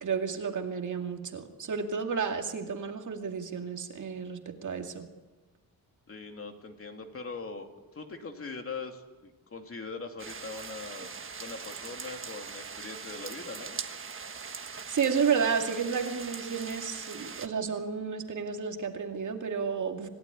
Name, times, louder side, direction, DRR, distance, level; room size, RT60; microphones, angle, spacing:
voice 1, 0.0-5.1 14.9-20.1, right 6 dB, 50° right, 4 dB, 2.4 m, -31 dB
voice 2, 6.1-11.1 11.4-13.8, left 4 dB, 35° left, 4 dB, 2.7 m, -41 dB
sound 1, 10.2-17.5, right 5 dB, 35° right, 1.5 m, -41 dB
27.0 x 16.0 x 9.9 m, 1.2 s
wide cardioid pair, 155°, 37 cm